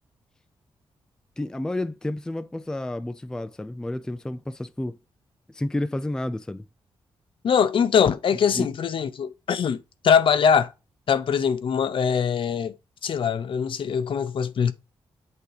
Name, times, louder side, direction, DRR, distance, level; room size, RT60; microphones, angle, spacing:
voice 1, 1.4-5.0 5.5-6.7 8.5-8.7, left 1 dB, 5° left, 0.3 m, -30 dB
voice 2, 7.4-10.7 11.1-12.8 13.0-14.7, left 7 dB, 60° left, 0.7 m, -22 dB
8.0 x 2.9 x 4.9 m
cardioid pair, 105°, 10 cm